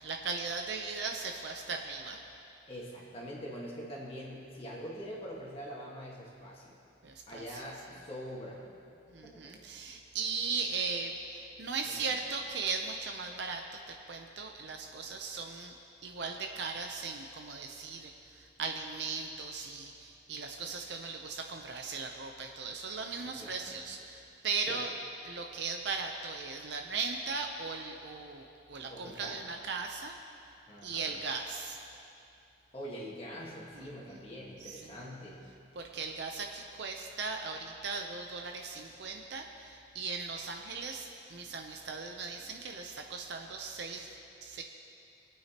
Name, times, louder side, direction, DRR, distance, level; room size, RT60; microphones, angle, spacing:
voice 1, 0.0-2.2 7.0-7.6 9.1-13.8 14.1-15.7 16.0-24.9 25.2-30.2 30.8-31.8 33.8-34.2 34.6-34.9 35.8-44.1 44.4-44.6, right 4 dB, 65° right, 3 dB, 0.7 m, -38 dB
voice 2, 2.7-6.8 7.3-8.6 9.2-9.6 11.9-12.2 23.2-23.8 24.7-24.8 28.9-29.4 30.7-31.1 32.7-35.4, equal, 30° left, -5 dB, 1.5 m, -44 dB
22.0 x 8.9 x 2.9 m, 2.6 s
head